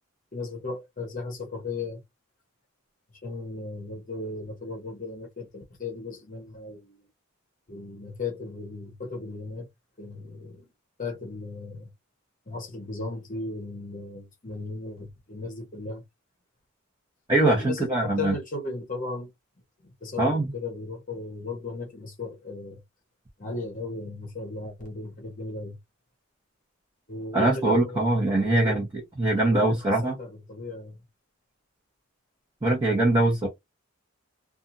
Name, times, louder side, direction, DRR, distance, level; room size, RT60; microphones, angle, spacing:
voice 1, 0.3-2.0 3.1-7.1 7.7-9.7 10.0-10.7 11.0-11.9 12.5-16.0 17.6-19.3 19.8-22.8 23.4-25.8 27.1-28.8 29.5-29.8 30.0-31.0, left 3 dB, 40° left, 0.8 m, -36 dB
voice 2, 17.3-18.3 20.2-20.5 27.3-28.9 29.2-30.1 32.6-33.5, right 2 dB, 20° right, 0.9 m, -22 dB
2.6 x 2.4 x 2.5 m
head